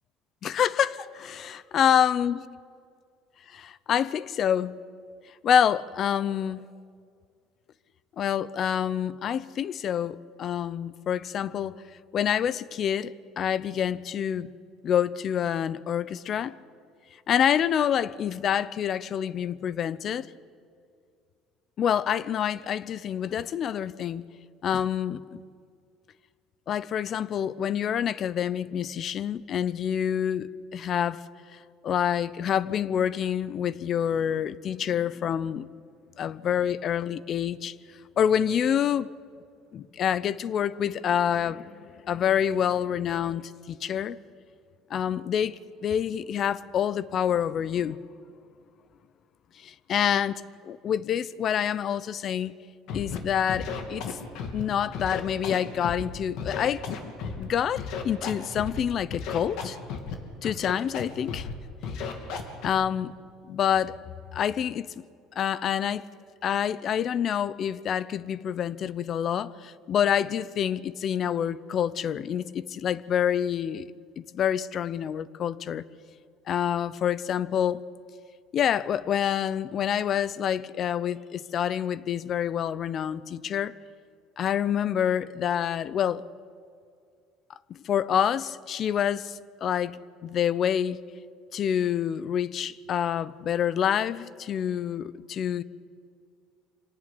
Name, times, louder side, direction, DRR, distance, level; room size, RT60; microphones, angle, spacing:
voice 1, 0.4-1.0 1.7-2.5 3.5-4.8 5.4-6.6 8.2-11.8 12.1-14.5 14.8-16.6 17.3-20.3 21.8-24.2 24.6-25.4 26.7-31.2 31.5-35.7 36.2-37.7 38.2-39.1 39.7-44.2 44.9-48.0 49.6-52.5 52.9-54.2 54.5-56.8 57.4-59.8 60.4-61.5 62.6-63.1 63.5-64.0 64.3-65.0 65.4-66.1 66.4-73.9 74.2-75.8 76.5-77.8 78.5-83.7 84.4-86.2 87.7-90.0 90.2-91.0 91.5-95.6, left 9 dB, 40° left, 0.8 m, -27 dB
Scratching (performance technique), 52.9-53.2 53.5-54.6 54.9-56.0 56.4-57.5 57.8-58.8 59.1-60.1 60.4-61.0 61.3-61.5 61.8-62.7, left 6 dB, 65° left, 3.1 m, -33 dB
26.0 x 18.0 x 9.9 m
cardioid pair, 140°, 0 cm